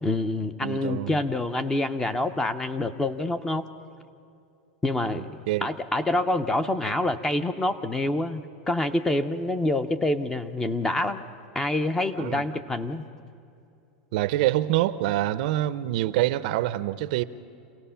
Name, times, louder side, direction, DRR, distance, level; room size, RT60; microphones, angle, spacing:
voice 1, 0.0-3.7 4.8-11.2 11.5-13.0, left 2 dB, 10° left, 0.6 m, -27 dB
voice 2, 0.6-1.2 5.2-5.7 12.2-12.4 14.1-17.2, right 15 dB, 60° right, 0.6 m, -26 dB
27.5 x 17.5 x 5.7 m
supercardioid pair, 145°, 5 cm